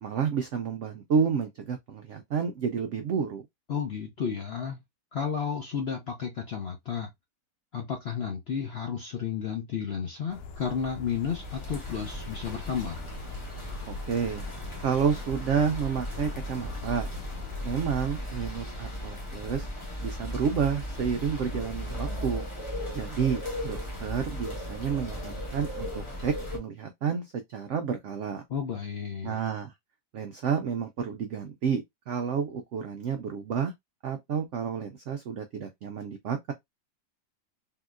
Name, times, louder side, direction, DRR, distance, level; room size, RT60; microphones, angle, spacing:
voice 1, 0.0-3.4 13.9-14.4 14.8-17.1 17.6-19.7 20.0-22.4 22.9-28.4 29.2-29.7 30.1-33.7 34.0-36.5, right 6 dB, 80° right, 0.6 m, -30 dB
voice 2, 3.7-4.8 5.1-7.1 7.7-13.0 28.5-29.4, left 7 dB, 60° left, 0.6 m, -32 dB
sound 1, 10.3-17.9, left 4 dB, 90° left, 1.2 m, -43 dB
sound 2, 11.1-26.6, equal, 25° left, 0.8 m, -36 dB
3.6 x 2.8 x 2.4 m
omnidirectional pair, 1.8 m